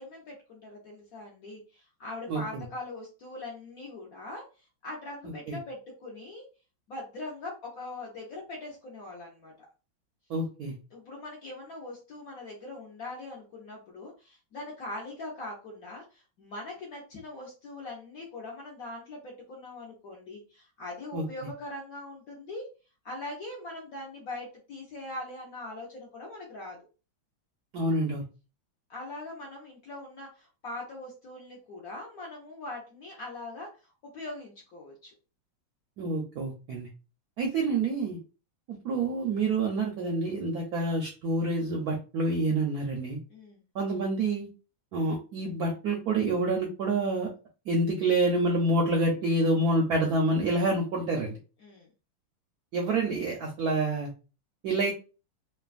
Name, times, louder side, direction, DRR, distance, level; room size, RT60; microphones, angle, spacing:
voice 1, 0.0-6.5 6.9-9.7 10.9-22.7 23.0-26.8 28.9-33.7 34.0-35.1 43.3-43.6 51.6-51.9, left 2 dB, 65° left, -2 dB, 0.9 m, -41 dB
voice 2, 2.3-2.6 5.2-5.6 10.3-10.7 21.1-21.2 27.7-28.2 36.0-36.9 37.4-38.2 38.7-43.2 43.7-44.5 44.9-47.3 47.7-51.4 52.7-54.1 54.6-54.9, right 2 dB, 75° right, 0 dB, 0.8 m, -27 dB
3.2 x 2.2 x 2.4 m, 0.33 s
omnidirectional pair, 2.2 m